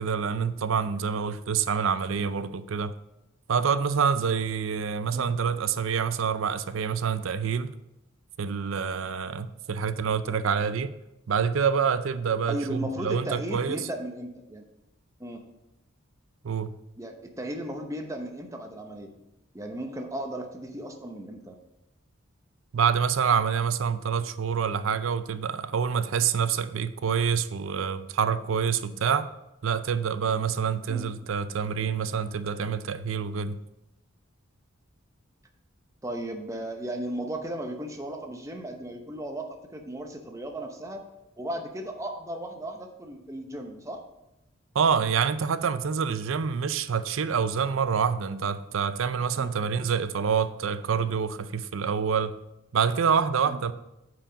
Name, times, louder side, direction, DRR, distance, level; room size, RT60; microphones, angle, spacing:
voice 1, 0.0-2.9 3.5-7.7 8.4-10.9 11.3-13.9 16.4-16.8 22.7-29.3 29.6-33.6 44.7-52.4 52.7-53.7, right 6 dB, 70° right, 0.5 m, -27 dB
voice 2, 12.5-14.6 15.2-15.4 17.0-19.1 19.5-21.6 30.9-31.0 36.0-41.0 41.4-44.0 49.4-49.5 53.5-53.6, right 1 dB, 15° right, 0.8 m, -36 dB
8.9 x 4.9 x 5.1 m
head